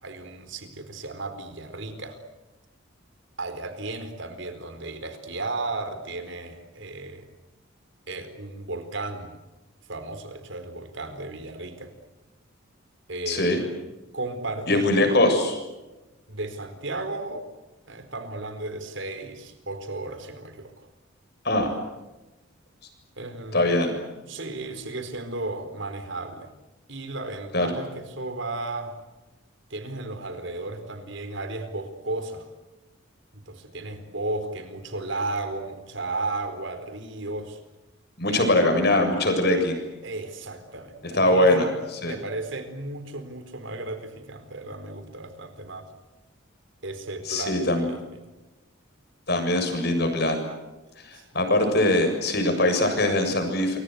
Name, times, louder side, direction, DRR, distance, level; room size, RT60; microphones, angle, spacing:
voice 1, 0.0-2.2 3.4-7.2 8.1-9.4 9.9-11.9 13.1-13.6 14.1-15.1 16.3-17.5 17.9-20.9 23.2-23.7 24.2-26.5 26.9-28.9 29.7-32.5 33.3-37.6 38.3-38.5 40.0-41.7 42.0-45.9 46.8-48.0 51.1-51.2, right 2 dB, 60° right, 9 dB, 4.4 m, -34 dB
voice 2, 13.3-13.6 14.7-15.6 21.4-21.7 23.5-23.9 27.5-27.7 38.2-39.8 41.1-41.7 42.0-42.2 47.3-47.9 49.3-50.4 51.0-53.8, left 1 dB, 50° left, 5 dB, 7.3 m, -22 dB
28.5 x 24.5 x 8.1 m, 1.1 s
head